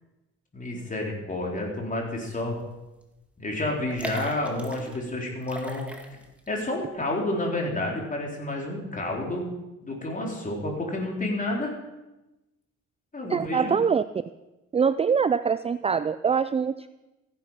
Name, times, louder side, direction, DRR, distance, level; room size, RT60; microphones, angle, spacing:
voice 1, 0.5-2.6 3.4-5.8 6.5-9.5 9.8-11.7 13.1-13.7, left 1 dB, 25° left, 0 dB, 4.1 m, -30 dB
sound 1, 2.5-2.7 3.0-3.1 3.8-5.0 5.4-6.5 6.8-6.9, right 1 dB, 5° right, 2.2 m, -38 dB
voice 2, 13.3-14.0 14.7-16.9, right 6 dB, 20° right, 14 dB, 0.4 m, -24 dB
15.0 x 9.8 x 5.8 m, 1.0 s
cardioid pair, 90°, 30 cm